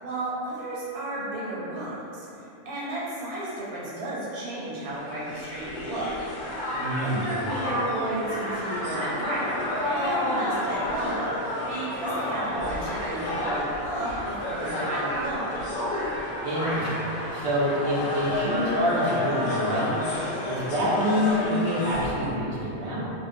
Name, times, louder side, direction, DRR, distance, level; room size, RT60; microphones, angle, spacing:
voice 1, 0.0-2.3 2.7-6.1 7.0-11.3 11.7-15.7, right 1 dB, 90° right, -8 dB, 1.2 m, -32 dB
Crowd, 4.9-22.3, left 1 dB, 70° left, 0.9 m, -30 dB
voice 2, 6.7-7.3 16.4-20.0 20.5-23.1, equal, 65° right, -7 dB, 0.5 m, -26 dB
2.5 x 2.2 x 2.5 m, 2.9 s
omnidirectional pair, 1.6 m